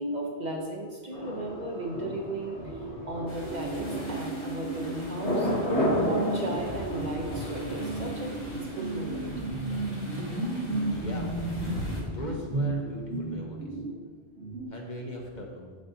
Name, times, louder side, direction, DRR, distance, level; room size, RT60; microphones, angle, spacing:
voice 1, 0.0-5.5 6.0-9.3 10.2-10.3, right 1 dB, 45° right, 0 dB, 0.8 m, -35 dB
Thunder, 1.1-13.0 13.3-13.4, equal, 75° left, 2.0 m, -34 dB
sound 1, 2.7-3.2 3.5-14.0 14.4-14.7, right 2 dB, 85° right, 1.9 m, -34 dB
sound 2, 3.3-12.0, left 1 dB, 25° left, 1.2 m, -45 dB
voice 2, 10.8-11.3 12.1-13.7 14.7-15.8, left 1 dB, 45° left, 0 dB, 0.8 m, -39 dB
6.6 x 6.3 x 2.7 m, 1.5 s
omnidirectional pair, 1.1 m